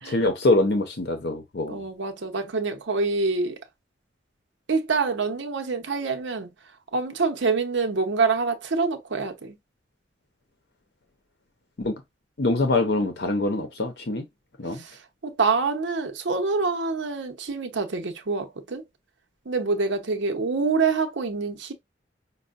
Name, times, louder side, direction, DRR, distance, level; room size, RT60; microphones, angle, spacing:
voice 1, 0.0-1.8 11.8-12.0 12.4-14.2 14.6-14.8, left 2 dB, 60° left, 0.7 m, -24 dB
voice 2, 1.7-3.6 4.7-6.5 6.9-9.6 14.8-14.9 15.2-18.8 19.5-21.7, right 4 dB, 85° right, 0.8 m, -26 dB
5.4 x 2.2 x 2.4 m
head